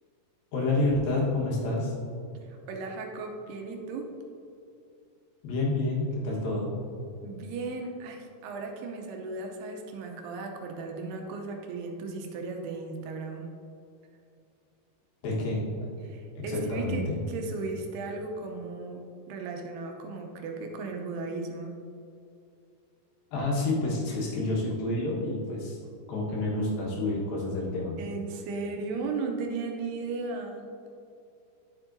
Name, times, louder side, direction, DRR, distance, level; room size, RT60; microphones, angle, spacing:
voice 1, 0.5-1.9 5.4-6.7 15.2-15.9 16.4-17.2 23.3-25.8 26.1-28.0, left 2 dB, 65° left, -4 dB, 3.0 m, -29 dB
voice 2, 2.4-4.1 7.2-13.5 16.0-21.7 28.0-30.6, right 3 dB, 80° right, 2 dB, 2.7 m, -36 dB
10.5 x 7.2 x 2.6 m, 2.5 s
omnidirectional pair, 4.8 m